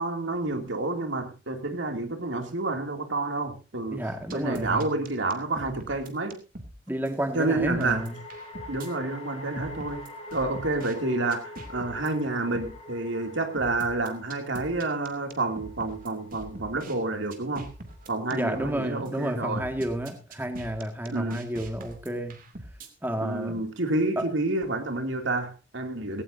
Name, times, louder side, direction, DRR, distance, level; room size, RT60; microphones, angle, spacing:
voice 1, 0.0-4.0 4.3-6.4 7.3-8.1 8.7-17.7 18.1-19.6 21.1-21.4 23.2-26.2, right 2 dB, 90° right, 5 dB, 2.7 m, -29 dB
voice 2, 3.9-4.9 6.9-8.2 18.3-22.4 23.0-23.6 24.2-24.3, right 1 dB, 10° right, 5 dB, 1.9 m, -31 dB
sound 1, 4.2-4.9 7.3-18.7, left 2 dB, 35° left, 4.0 m, -45 dB
sound 2, 4.3-6.7 7.1-7.2 7.6-8.9 9.6-10.9 11.3-12.1 12.5-12.7 13.6-16.9 17.3-18.7 19.1-19.2 19.6-22.9, right 1 dB, 50° right, 2.7 m, -43 dB
17.5 x 17.0 x 2.7 m, 0.32 s
head